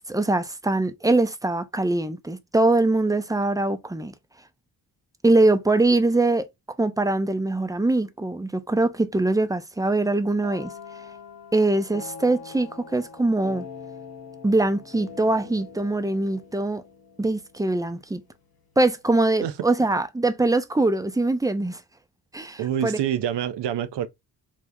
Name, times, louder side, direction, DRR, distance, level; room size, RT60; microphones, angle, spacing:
voice 1, 0.1-4.1 5.2-6.4 6.8-10.7 11.5-13.7 14.4-16.8 17.2-18.2 18.8-21.8 22.3-23.0, right 2 dB, 10° right, 0.4 m, -22 dB
sound 1, 10.4-18.2, left 6 dB, 55° left, 0.8 m, -43 dB
voice 2, 22.6-24.1, right 10 dB, 70° right, 0.5 m, -26 dB
3.0 x 2.0 x 3.5 m
cardioid pair, 60°, 43 cm